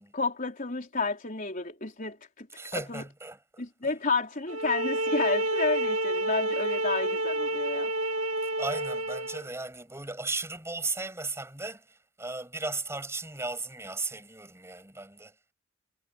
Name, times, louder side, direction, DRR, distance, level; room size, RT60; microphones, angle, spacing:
voice 1, 0.0-2.5 2.9-3.0 3.6-7.9, left 4 dB, 40° left, 4.2 m, -31 dB
voice 2, 2.6-3.9 8.6-15.3, right 3 dB, 15° right, 7.9 m, -36 dB
sound 1, 4.5-9.5, right 1 dB, 85° right, 2.7 m, -29 dB
head